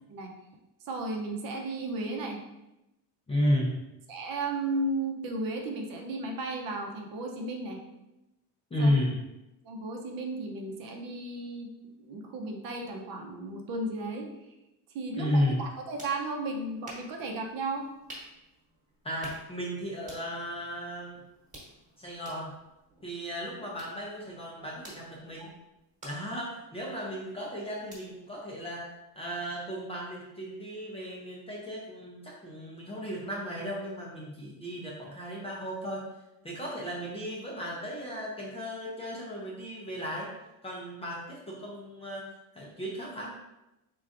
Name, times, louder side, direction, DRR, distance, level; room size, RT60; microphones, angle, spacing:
voice 1, 0.9-2.4 4.1-7.8 8.8-8.9 9.6-11.7 12.0-14.3 14.9-17.8, right 2 dB, 55° right, 2 dB, 0.7 m, -34 dB
voice 2, 3.3-3.9 8.7-9.2 15.2-15.7 19.0-21.2 22.0-22.5 23.0-25.5 26.0-28.9 29.2-36.1 36.4-40.3 40.6-42.2 42.5-43.3, equal, 15° left, -4 dB, 0.5 m, -34 dB
sound 1, 15.5-29.3, right 1 dB, 20° right, 1.3 m, -53 dB
4.5 x 3.9 x 2.5 m, 0.93 s
cardioid pair, 175°, 41 cm